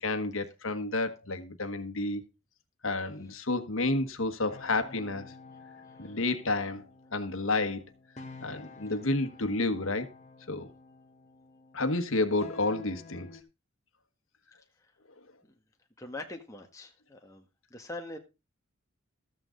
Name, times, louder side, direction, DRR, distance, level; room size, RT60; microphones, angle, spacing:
voice 1, 0.0-2.2 2.8-5.3 6.0-6.8 7.1-7.8 8.4-10.1 10.5-10.7 11.7-13.3, left 2 dB, 75° left, 1.4 m, -30 dB
sound 1, 4.5-13.4, left 3 dB, 35° left, 1.5 m, -50 dB
voice 2, 16.0-17.4 17.7-18.2, left 2 dB, 15° left, 1.5 m, -42 dB
13.5 x 9.0 x 3.8 m
head